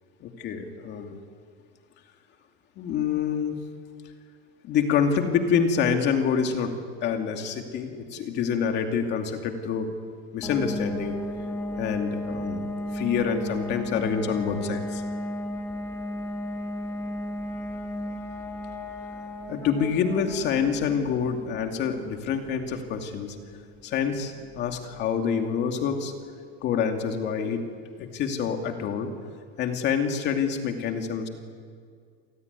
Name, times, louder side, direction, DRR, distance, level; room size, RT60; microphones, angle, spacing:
voice 1, 0.2-1.2 2.8-3.6 4.6-6.7 7.0-9.9 10.3-11.2 11.8-15.0 19.5-23.3 23.8-26.1 26.6-27.6 28.0-29.1 29.6-31.3, left 7 dB, 35° left, 4 dB, 2.5 m, -27 dB
sound 1, 10.4-25.0, left 1 dB, 5° left, 1.9 m, -34 dB
28.5 x 18.0 x 9.6 m, 2.1 s
supercardioid pair, 170°, 31 cm